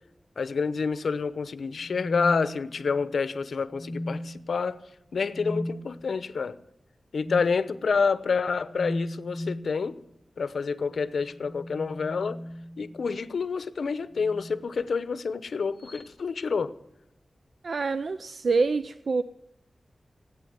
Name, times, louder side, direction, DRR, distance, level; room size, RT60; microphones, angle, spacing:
voice 1, 0.4-4.8 5.1-6.6 7.1-9.9 10.4-12.4 12.8-16.7, left 5 dB, 90° left, 0.9 m, -28 dB
sound 1, 1.8-3.1 3.7-4.5 5.3-5.8 7.2-7.6 8.7-9.7 11.2-13.1 14.1-14.6 15.8-16.1, left 1 dB, 15° left, 1.8 m, -36 dB
voice 2, 17.6-19.2, right 4 dB, 70° right, 0.5 m, -26 dB
17.0 x 8.9 x 9.4 m
wide cardioid pair, 110°, 0 cm